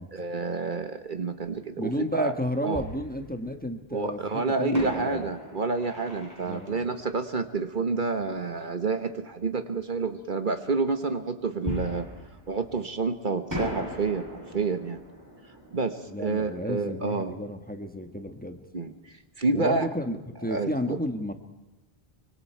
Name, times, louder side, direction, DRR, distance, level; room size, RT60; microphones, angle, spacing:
voice 1, 0.1-2.3 2.6-2.8 3.9-12.1 12.5-15.0 15.7-17.3 18.7-19.9 20.5-21.0, right 4 dB, 55° right, 8 dB, 1.3 m, -29 dB
voice 2, 1.8-5.3 6.5-6.9 16.1-18.6 19.5-21.3, equal, 10° left, 6 dB, 1.4 m, -32 dB
Fireworks, 2.7-3.8 4.7-8.2 11.6-13.1 13.5-18.0 18.3-18.4 18.9-19.1, equal, 20° right, 7.2 m, -39 dB
25.0 x 24.0 x 4.6 m, 0.99 s
omnidirectional pair, 1.0 m